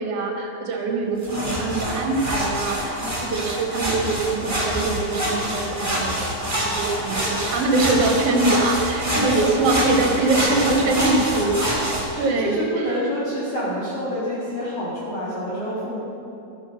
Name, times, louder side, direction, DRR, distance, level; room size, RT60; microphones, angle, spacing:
voice 1, 0.0-11.5 12.2-12.6, right 3 dB, 50° right, 1 dB, 2.1 m, -23 dB
sound 1, 1.2-12.0, equal, 5° right, 1.7 m, -26 dB
voice 2, 9.1-11.0 11.3-16.0, equal, 45° left, -10 dB, 3.0 m, -29 dB
13.5 x 10.5 x 6.0 m, 2.9 s
omnidirectional pair, 4.5 m